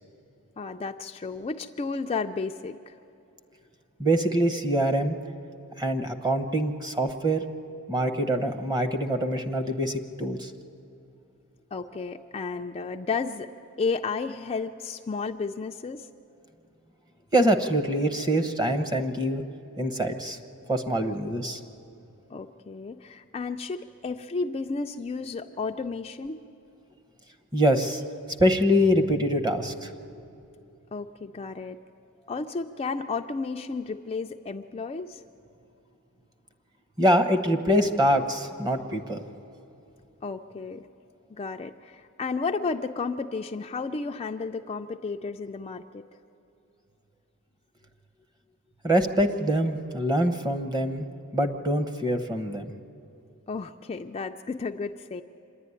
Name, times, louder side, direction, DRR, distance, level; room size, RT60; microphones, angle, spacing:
voice 1, 0.6-2.9 11.7-13.5 13.8-16.1 22.3-26.4 30.9-31.8 32.3-35.2 40.2-40.9 41.3-46.0 53.5-55.2, left 4 dB, 25° left, 5 dB, 0.4 m, -32 dB
voice 2, 4.0-5.2 5.8-7.4 7.9-10.5 17.3-19.4 19.8-20.4 20.7-21.6 27.5-28.0 28.4-29.9 37.0-39.2 48.8-51.0 51.3-52.7, equal, 20° right, 8 dB, 1.0 m, -24 dB
26.0 x 11.0 x 9.7 m, 2.9 s
head